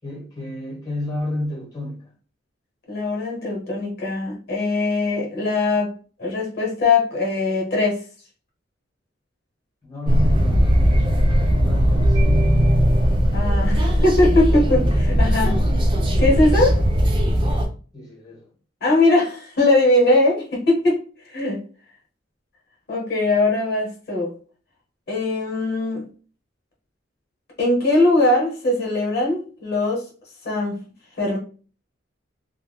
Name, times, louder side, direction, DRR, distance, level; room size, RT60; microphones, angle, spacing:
voice 1, 0.0-2.0 9.8-12.6 15.2-15.6 17.9-18.5, left 1 dB, 20° left, 1.1 m, -31 dB
voice 2, 2.9-5.9 6.2-8.0 13.3-15.6 16.2-16.8 18.8-21.6 22.9-24.3 25.1-26.0 27.6-30.0 30.4-30.8 31.2-31.4, left 2 dB, 60° left, 0.9 m, -20 dB
sound 1, 10.1-17.7, equal, 25° right, 0.4 m, -18 dB
3.4 x 2.2 x 2.2 m
head